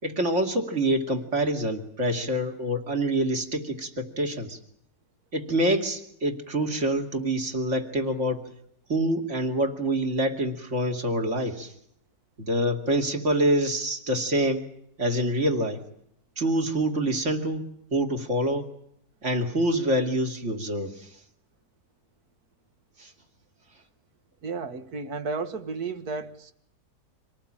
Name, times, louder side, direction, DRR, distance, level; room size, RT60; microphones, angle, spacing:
voice 1, 0.0-4.6 5.3-8.4 8.9-11.7 12.4-14.7 15.0-15.8 16.4-17.6 17.9-18.6 19.2-21.1 23.0-23.1, right 1 dB, 40° right, 2.8 m, -26 dB
voice 2, 24.4-26.5, right 4 dB, 60° right, 2.0 m, -33 dB
26.0 x 18.5 x 8.8 m
omnidirectional pair, 1.9 m